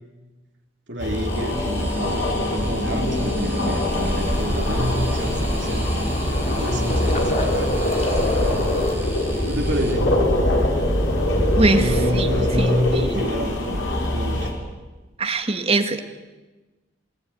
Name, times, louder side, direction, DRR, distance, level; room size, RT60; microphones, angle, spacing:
voice 1, 0.9-5.9 6.6-7.7 8.4-8.8 9.5-10.1 11.8-13.8 14.1-14.5, equal, 65° right, 1 dB, 3.1 m, -28 dB
sound 1, 1.0-14.5, left 1 dB, 80° left, 5.9 m, -23 dB
sound 2, 1.1-9.9, right 1 dB, 10° right, 6.0 m, -37 dB
sound 3, 3.9-8.9, left 1 dB, 35° left, 4.0 m, -28 dB
voice 2, 11.6-13.2 15.2-16.0, right 2 dB, 30° right, 6 dB, 1.9 m, -23 dB
28.0 x 19.0 x 9.8 m, 1.2 s
head